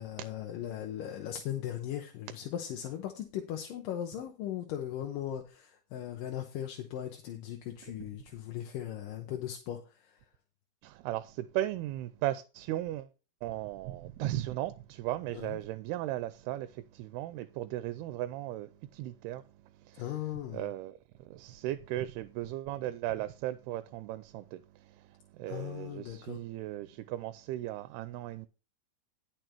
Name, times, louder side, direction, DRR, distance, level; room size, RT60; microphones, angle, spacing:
voice 1, 0.0-10.1 15.3-15.6 20.0-20.7 25.5-26.4, left 11 dB, 70° left, 2.4 m, -38 dB
voice 2, 10.8-13.1 13.4-19.4 19.8-28.5, right 14 dB, 85° right, 2.6 m, -37 dB
11.0 x 6.7 x 4.5 m
omnidirectional pair, 4.5 m